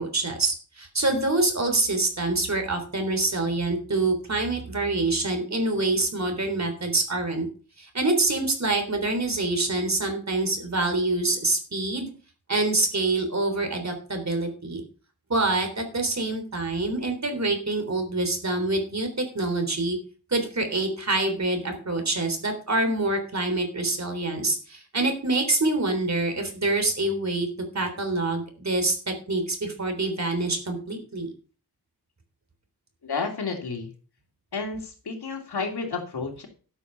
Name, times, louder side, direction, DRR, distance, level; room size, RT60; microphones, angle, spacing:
voice 1, 0.0-7.5 7.8-12.1 12.5-14.8 15.3-20.0 20.3-27.5 27.7-31.3, right 2 dB, 45° right, 6 dB, 3.6 m, -26 dB
voice 2, 33.0-33.9 34.5-36.5, left 4 dB, 80° left, 2 dB, 2.8 m, -31 dB
12.5 x 6.8 x 5.7 m, 0.38 s
wide cardioid pair, 95°, 38 cm